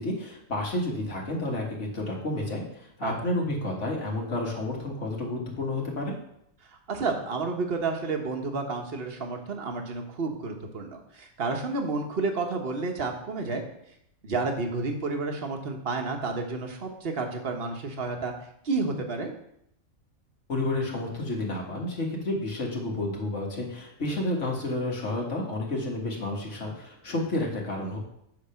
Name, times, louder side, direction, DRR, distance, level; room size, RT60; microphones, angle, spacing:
voice 1, 0.0-6.1 20.5-28.0, left 2 dB, 60° left, -1 dB, 2.0 m, -30 dB
voice 2, 6.7-13.6 14.2-18.3 18.6-19.3, right 3 dB, 45° right, 4 dB, 1.3 m, -30 dB
7.9 x 5.1 x 5.7 m, 0.74 s
omnidirectional pair, 1.4 m